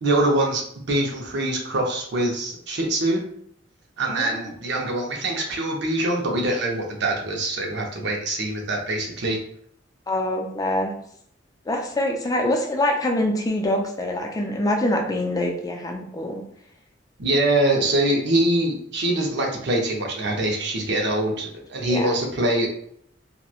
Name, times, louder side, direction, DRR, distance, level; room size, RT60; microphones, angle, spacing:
voice 1, 0.0-3.2 4.0-9.4 17.2-22.7, right 1 dB, 65° right, 0 dB, 0.6 m, -24 dB
voice 2, 10.1-11.0 11.7-16.4 21.8-22.2, left 1 dB, 20° left, 3 dB, 0.4 m, -25 dB
2.9 x 2.1 x 2.3 m, 0.66 s
head